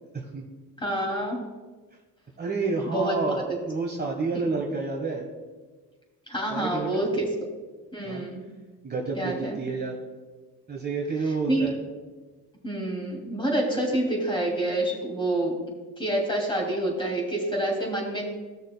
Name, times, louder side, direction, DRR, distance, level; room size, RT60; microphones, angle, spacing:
voice 1, 0.8-1.4 2.8-3.1 3.5-3.6 4.3-4.4 6.3-7.3 7.9-8.4 9.1-9.6 11.5-11.7 12.6-15.6 16.0-18.2, right 1 dB, 10° left, -1 dB, 2.6 m, -27 dB
voice 2, 2.4-5.2 6.5-7.1 8.0-8.2 8.8-9.9 10.7-11.8, right 4 dB, 25° right, 0 dB, 1.3 m, -29 dB
16.5 x 6.4 x 2.3 m, 1.4 s
cardioid pair, 95°, 39 cm